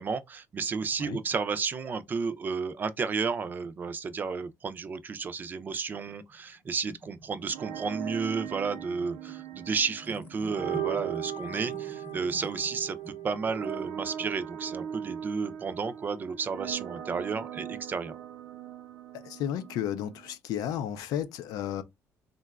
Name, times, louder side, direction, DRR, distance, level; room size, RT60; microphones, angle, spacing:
voice 1, 0.0-18.2, right 5 dB, 30° right, 0.4 m, -32 dB
sound 1, 6.3-16.4, left 2 dB, 20° left, 0.8 m, -51 dB
sound 2, 7.4-20.4, right 10 dB, 85° right, 0.6 m, -39 dB
voice 2, 19.1-21.8, left 10 dB, 85° left, 0.5 m, -33 dB
3.8 x 2.2 x 2.3 m
cardioid pair, 145°, 6 cm